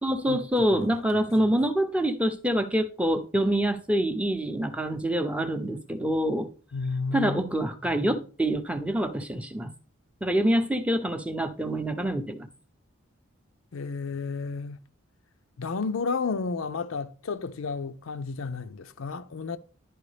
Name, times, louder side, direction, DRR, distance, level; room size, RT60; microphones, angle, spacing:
voice 1, 0.0-6.5 7.1-9.7 10.2-12.5, right 1 dB, 5° right, 0.6 m, -26 dB
voice 2, 0.7-1.5 6.7-7.7 13.7-14.8 15.6-19.6, left 4 dB, 80° left, 0.5 m, -32 dB
11.0 x 4.6 x 3.2 m
head